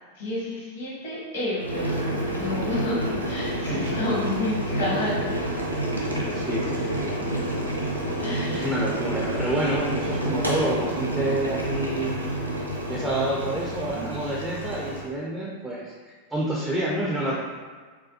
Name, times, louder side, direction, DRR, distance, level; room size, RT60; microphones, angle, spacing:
voice 1, 0.1-5.3 8.2-8.7, left 1 dB, 60° left, -6 dB, 1.0 m, -30 dB
Boiling, 1.6-15.1, right 1 dB, 90° right, 0.4 m, -29 dB
voice 2, 5.9-7.3 8.5-12.2 12.9-17.4, right 1 dB, 10° right, -5 dB, 0.3 m, -29 dB
2.4 x 2.2 x 2.6 m, 1.5 s
figure-of-eight pair, 90°, 0 cm